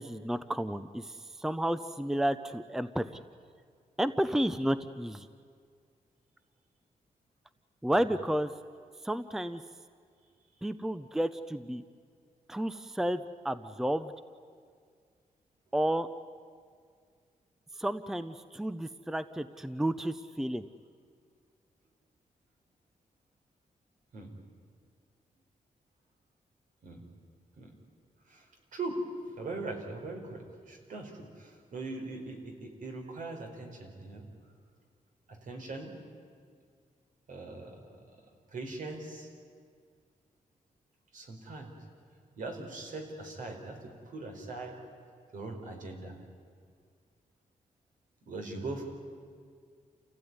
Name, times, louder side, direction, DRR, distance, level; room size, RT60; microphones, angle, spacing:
voice 1, 0.0-3.1 4.0-5.3 7.8-8.5 9.0-9.6 10.6-11.8 12.5-14.1 15.7-16.1 17.8-20.6, right 1 dB, 5° right, 12 dB, 0.6 m, -31 dB
voice 2, 29.4-34.2 35.3-35.9 37.3-37.8 38.5-39.3 41.1-41.7 42.4-43.8 44.0-44.8 45.3-46.1 48.3-48.9, right 3 dB, 70° right, 3 dB, 4.3 m, -40 dB
28.0 x 16.0 x 9.6 m, 2.1 s
wide cardioid pair, 140°, 14 cm